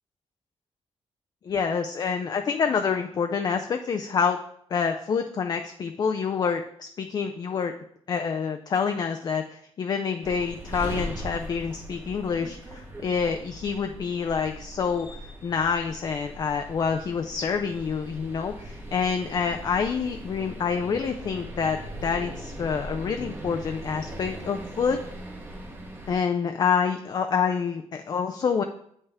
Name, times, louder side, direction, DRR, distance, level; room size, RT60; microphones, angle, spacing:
voice 1, 1.4-4.4 4.7-7.7 8.1-25.0 26.1-28.6, left 6 dB, 40° left, 5 dB, 0.4 m, -27 dB
sound 1, 10.2-26.2, equal, 20° right, 0.9 m, -39 dB
8.2 x 5.5 x 3.4 m, 0.68 s
wide cardioid pair, 175°, 11 cm